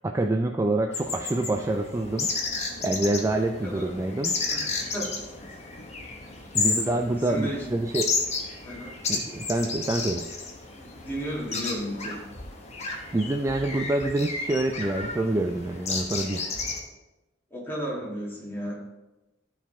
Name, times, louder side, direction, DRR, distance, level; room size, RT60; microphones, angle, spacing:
voice 1, 0.0-2.3 2.8-4.4 6.5-8.1 9.1-10.3 13.1-16.4, right 2 dB, 15° right, 3 dB, 0.3 m, -26 dB
sound 1, 0.9-16.8, left 4 dB, 35° left, 1.2 m, -32 dB
voice 2, 3.6-4.1 4.5-5.6 6.8-7.7 8.6-8.9 10.7-12.2 13.2-13.4 17.5-18.8, equal, 10° left, -6 dB, 2.4 m, -35 dB
12.5 x 4.7 x 3.6 m, 1.0 s
head